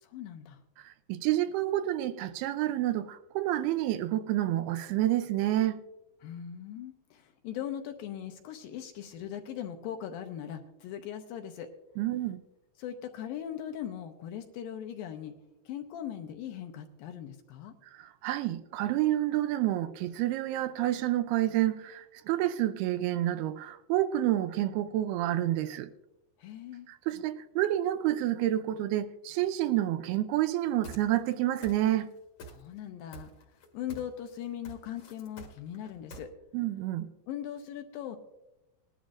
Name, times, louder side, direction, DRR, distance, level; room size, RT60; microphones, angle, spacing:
voice 1, 0.0-0.6 6.2-11.7 12.8-15.4 15.7-17.7 26.4-26.9 32.5-33.3 33.7-36.3 37.3-38.2, left 10 dB, 75° left, 2.3 m, -40 dB
voice 2, 0.8-5.8 12.0-12.4 17.9-25.9 26.9-32.1 36.5-37.1, right 13 dB, 80° right, 2.5 m, -29 dB
sound 1, 30.8-31.3 31.6-32.1 32.4-32.9 33.1-34.2 34.4-36.2, right 2 dB, 50° left, 1.9 m, -46 dB
20.0 x 11.5 x 2.5 m
omnidirectional pair, 4.6 m